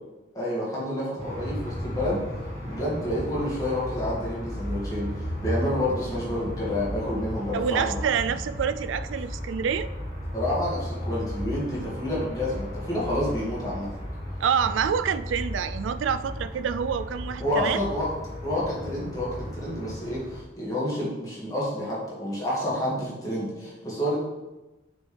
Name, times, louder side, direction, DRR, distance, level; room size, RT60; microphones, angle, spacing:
voice 1, 0.3-2.2 2.6-5.1 5.4-8.0 10.3-13.9 17.4-18.1 18.4-24.1, left 1 dB, 20° left, -7 dB, 2.1 m, -29 dB
sound 1, 1.2-20.4, equal, 35° right, 1.8 m, -35 dB
voice 2, 7.5-9.9 14.4-17.8, right 7 dB, 85° right, 12 dB, 0.3 m, -27 dB
6.3 x 5.3 x 3.3 m, 1.1 s
head